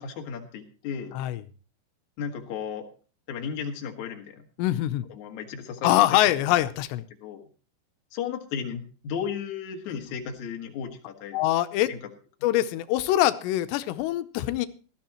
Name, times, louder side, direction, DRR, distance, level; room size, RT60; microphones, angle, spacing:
voice 1, 0.0-1.2 2.2-2.9 3.3-4.5 5.1-6.3 7.2-7.4 8.1-11.4 11.9-12.0, left 7 dB, 55° left, 3 dB, 2.7 m, -34 dB
voice 2, 1.1-1.4 4.6-5.1 5.8-7.0 11.3-11.9 12.4-14.7, left 14 dB, 90° left, 11 dB, 3.0 m, -24 dB
18.5 x 13.0 x 3.0 m, 0.36 s
omnidirectional pair, 4.9 m